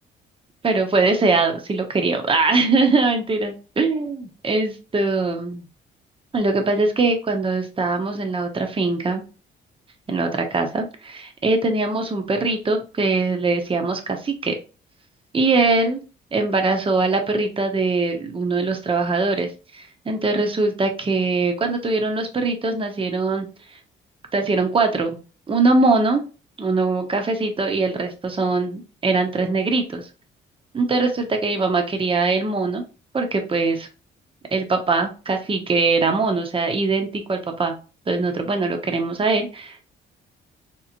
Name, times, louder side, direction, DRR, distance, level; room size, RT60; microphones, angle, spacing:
voice 1, 0.6-5.6 6.3-9.2 10.1-14.6 15.3-16.0 16.3-23.5 24.3-25.2 25.5-26.2 26.6-30.1 30.7-32.8 33.1-33.9 34.5-37.7 38.1-39.9, right 3 dB, 25° right, 5 dB, 0.9 m, -22 dB
3.9 x 3.0 x 2.4 m, 0.34 s
cardioid pair, 90°, 20 cm